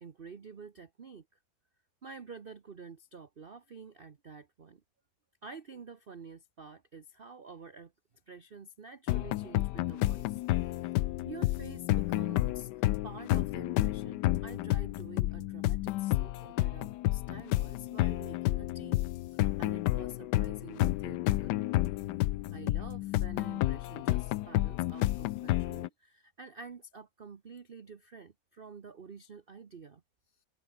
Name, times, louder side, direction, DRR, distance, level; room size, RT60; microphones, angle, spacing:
voice 1, 0.0-1.4 2.0-4.8 5.4-7.9 8.3-10.4 11.2-12.7 13.0-21.6 22.5-30.0, right 4 dB, 40° right, 0.9 m, -49 dB
sound 1, 9.1-25.9, left 16 dB, 75° left, 1.1 m, -30 dB
omnidirectional pair, 2.1 m